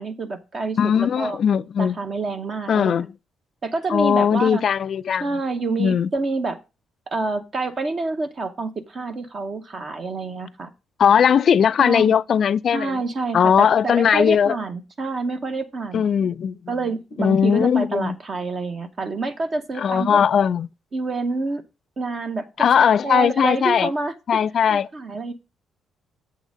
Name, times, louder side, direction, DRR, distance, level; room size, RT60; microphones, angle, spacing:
voice 1, 0.0-1.4 1.8-3.0 3.6-4.6 5.2-6.6 7.1-10.7 11.8-12.1 12.7-16.0 16.7-20.2 20.9-21.6 22.0-24.1 24.7-25.3, right 3 dB, 45° right, 0.8 m, -27 dB
voice 2, 0.8-2.0 2.7-3.1 3.9-5.3 5.8-6.1 11.0-13.0 13.3-14.6 15.9-16.6 17.2-18.2 19.8-20.7 22.6-23.9 24.3-24.9, left 7 dB, 55° left, 0.3 m, -19 dB
7.2 x 3.8 x 6.2 m
cardioid pair, 90°, 0 cm